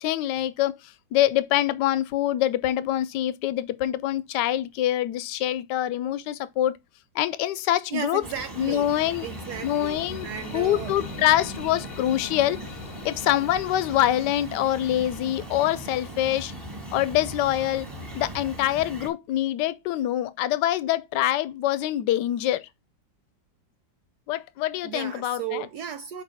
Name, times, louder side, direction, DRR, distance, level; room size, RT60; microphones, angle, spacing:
voice 1, 0.0-6.8 7.1-8.2 8.6-9.3 9.6-10.3 10.5-12.6 13.0-16.5 16.9-17.9 18.1-22.7 24.3-25.7, left 13 dB, 75° left, 1.2 m, -25 dB
voice 2, 7.9-8.9 9.2-11.0 24.8-26.2, right 9 dB, 70° right, 1.1 m, -35 dB
sound 1, 8.2-19.1, right 1 dB, 10° right, 1.5 m, -39 dB
sound 2, 8.5-18.2, left 6 dB, 55° left, 1.0 m, -45 dB
5.0 x 4.5 x 5.6 m
omnidirectional pair, 2.0 m